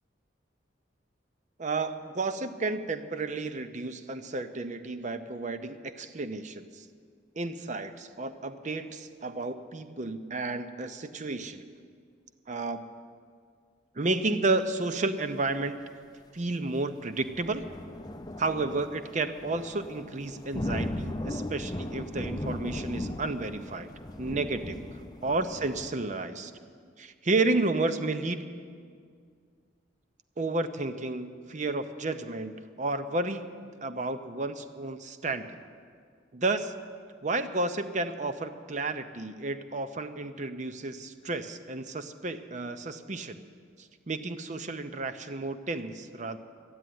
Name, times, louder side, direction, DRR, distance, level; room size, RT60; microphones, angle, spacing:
voice 1, 1.6-6.9 7.4-11.7 12.5-12.9 13.9-15.8 16.3-17.6 18.4-23.9 24.2-24.8 25.2-26.5 27.0-28.5 30.4-35.6 36.3-36.7 37.2-43.4 43.8-46.4, right 2 dB, 40° right, 10 dB, 0.7 m, -32 dB
sound 1, 17.2-25.9, left 1 dB, 20° left, 0.6 m, -37 dB
12.5 x 9.9 x 9.3 m, 2.1 s
head